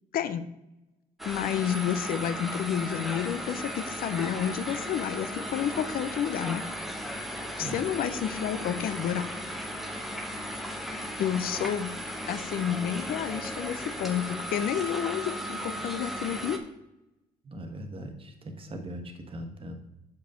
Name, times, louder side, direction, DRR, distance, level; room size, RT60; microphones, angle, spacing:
voice 1, 0.1-0.5 1.2-6.6 7.6-9.2 11.2-11.9 12.3-16.6, left 9 dB, 60° left, 12 dB, 0.6 m, -30 dB
sound 1, 1.2-16.6, equal, ahead, 1.0 m, -36 dB
voice 2, 17.4-19.9, right 1 dB, 30° right, 5 dB, 1.3 m, -40 dB
6.9 x 5.3 x 5.1 m, 0.92 s
cardioid pair, 110°, 17 cm